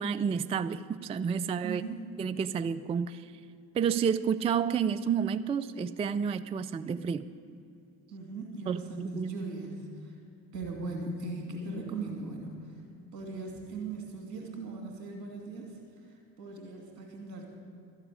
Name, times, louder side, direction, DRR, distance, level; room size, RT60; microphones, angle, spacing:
voice 1, 0.0-1.8 2.2-3.2 3.7-7.2 8.7-9.3, right 7 dB, 15° right, 12 dB, 0.3 m, -30 dB
voice 2, 1.6-2.1 8.1-10.2 10.5-12.8 13.1-17.5, right 3 dB, 80° right, 1 dB, 2.6 m, -39 dB
13.0 x 7.4 x 9.7 m, 2.6 s
hypercardioid pair, 55°, 49 cm